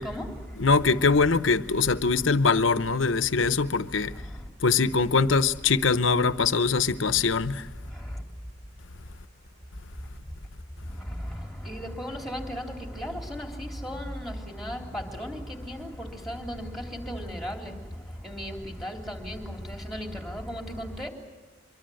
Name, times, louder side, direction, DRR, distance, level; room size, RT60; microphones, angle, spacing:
voice 1, 0.0-0.7 2.0-2.2 4.0-4.5 7.8-8.2 10.2-10.4 10.8-21.1, equal, ahead, 3.3 m, -36 dB
voice 2, 0.6-4.2 4.6-7.7, left 4 dB, 90° left, 0.9 m, -23 dB
24.5 x 23.0 x 7.8 m
head